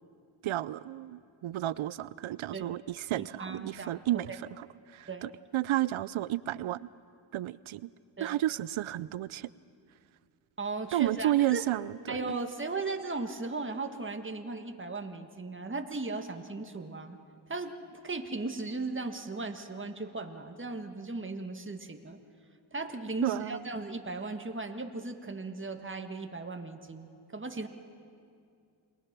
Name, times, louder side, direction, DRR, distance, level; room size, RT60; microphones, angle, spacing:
voice 1, 0.4-6.9 7.3-7.9 8.2-9.5 10.9-12.4 23.2-23.6, right 14 dB, 80° right, 19 dB, 0.6 m, -32 dB
voice 2, 3.2-4.0 4.3-4.4 5.1-5.3 8.2-8.4 10.6-11.6 12.1-17.2 17.5-22.2 22.7-27.7, right 3 dB, 25° right, 5 dB, 1.7 m, -37 dB
28.5 x 19.5 x 6.0 m, 2.4 s
cardioid pair, 50°, 48 cm